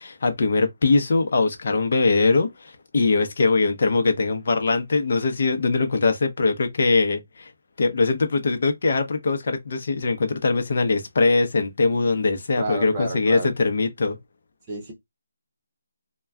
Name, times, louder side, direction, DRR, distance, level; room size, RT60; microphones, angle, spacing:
voice 1, 0.0-7.5 7.8-14.2, left 3 dB, 50° left, 0.7 m, -22 dB
voice 2, 12.6-13.5 14.7-14.9, right 2 dB, 20° right, 0.8 m, -30 dB
2.2 x 2.2 x 3.5 m
hypercardioid pair, 165°, 0 cm